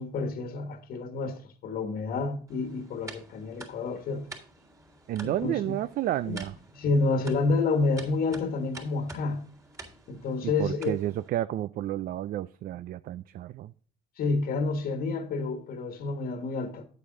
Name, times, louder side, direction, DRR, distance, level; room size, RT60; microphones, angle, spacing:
voice 1, 0.0-4.3 5.2-5.8 6.3-6.4 6.7-9.5 10.1-11.0 14.2-16.8, left 3 dB, 60° left, 1.4 m, -29 dB
sound 1, 2.5-11.3, right 3 dB, 20° right, 3.4 m, -48 dB
voice 2, 5.1-6.5 10.4-13.7, right 13 dB, 60° right, 0.4 m, -31 dB
9.5 x 8.4 x 3.8 m
cardioid pair, 110°, 17 cm